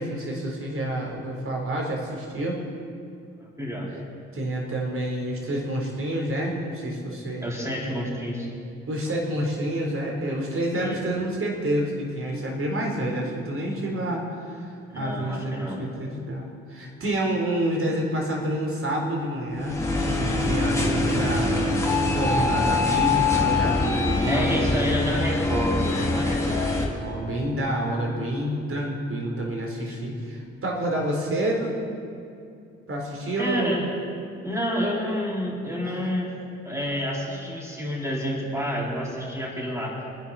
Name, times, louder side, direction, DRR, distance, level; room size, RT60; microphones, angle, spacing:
voice 1, 0.0-2.6 4.3-7.5 8.9-21.5 22.0-25.3 26.5-31.7 32.9-33.8 35.9-36.1, right 1 dB, 45° right, -1 dB, 4.1 m, -28 dB
voice 2, 3.4-3.9 7.4-8.5 10.7-11.0 14.9-15.8 24.3-26.7 29.9-30.0 33.4-34.0 34.4-36.4 36.6-40.0, equal, 10° right, -4 dB, 4.7 m, -29 dB
sound 1, 19.6-26.9, left 3 dB, 10° left, 2.8 m, -24 dB
25.5 x 10.5 x 4.3 m, 2.5 s
hypercardioid pair, 40°, 31 cm